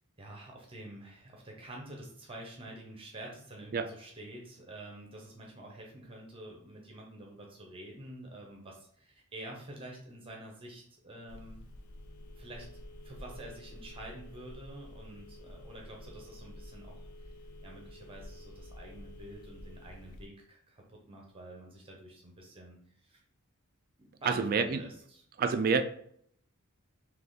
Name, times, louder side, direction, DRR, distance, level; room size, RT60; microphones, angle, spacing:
voice 1, 0.2-11.6 12.4-17.1 17.6-23.2 24.0-25.2, right 1 dB, 25° right, 0 dB, 0.8 m, -48 dB
Telephone, 11.3-20.3, left 1 dB, 80° left, 0.5 m, -49 dB
voice 2, 24.2-24.8 25.4-25.8, right 5 dB, 40° right, 9 dB, 0.3 m, -27 dB
3.5 x 2.8 x 4.0 m, 0.65 s
head